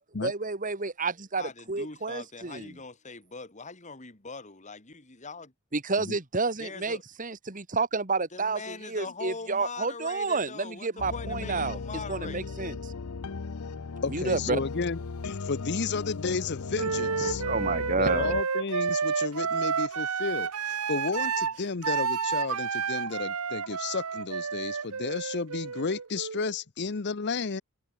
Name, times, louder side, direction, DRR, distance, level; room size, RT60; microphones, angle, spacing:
voice 1, 0.2-2.7 5.7-11.8 12.1-12.9 14.1-14.6 17.4-18.3, right 4 dB, 35° right, 1.9 m, -30 dB
voice 2, 1.4-5.5 6.6-7.0 8.3-12.5, left 4 dB, 35° left, 2.4 m, -42 dB
sound 1, 11.0-18.4, left 4 dB, 85° left, 0.7 m, -37 dB
voice 3, 14.0-17.4 18.0-27.6, left 4 dB, 50° left, 0.7 m, -32 dB
Wind instrument woodwind instrument, 16.7-26.6, right 6 dB, 80° right, 1.0 m, -30 dB
head